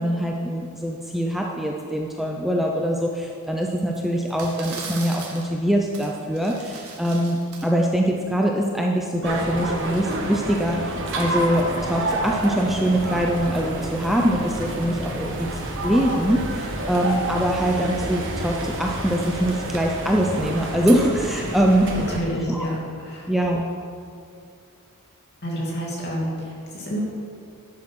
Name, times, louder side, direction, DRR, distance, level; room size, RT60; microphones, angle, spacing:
voice 1, 0.0-15.5 15.8-21.9 22.5-22.7 23.3-23.6, equal, ahead, -1 dB, 0.6 m, -23 dB
sound 1, 3.9-4.0 4.3-5.5 5.9-6.1 6.3-7.7, right 4 dB, 85° right, 1.9 m, -38 dB
sound 2, 9.2-22.2, right 1 dB, 60° right, 1.4 m, -29 dB
voice 2, 21.9-22.8 23.0-23.3 25.4-27.0, equal, 50° left, -4 dB, 2.8 m, -29 dB
11.0 x 7.7 x 6.1 m, 2.4 s
head